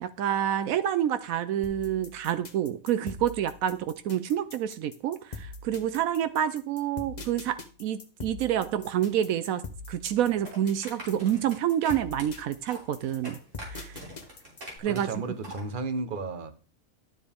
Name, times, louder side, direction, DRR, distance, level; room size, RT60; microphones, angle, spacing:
voice 1, 0.0-13.4 13.7-14.1 14.8-15.1, right 10 dB, 80° right, 1.0 m, -28 dB
sound 1, 1.6-14.8, left 3 dB, 35° left, 1.0 m, -43 dB
sound 2, 10.4-15.7, right 1 dB, 60° right, 3.6 m, -45 dB
voice 2, 14.8-16.5, right 3 dB, 40° right, 1.1 m, -33 dB
12.0 x 7.2 x 3.5 m
omnidirectional pair, 1.5 m